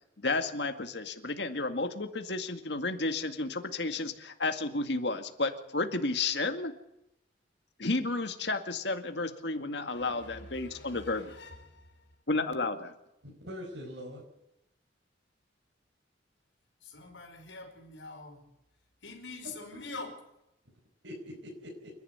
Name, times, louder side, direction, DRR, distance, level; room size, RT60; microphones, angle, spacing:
voice 1, 0.2-6.7 7.8-11.3 12.3-12.9, left 3 dB, 65° left, 6 dB, 2.1 m, -32 dB
voice 2, 9.9-12.0 16.8-18.4 19.0-20.2, left 3 dB, 80° left, 3 dB, 5.0 m, -45 dB
voice 3, 13.4-14.2 19.7-20.1 21.0-21.9, equal, 75° right, -1 dB, 5.4 m, -43 dB
28.5 x 11.0 x 9.5 m, 0.87 s
head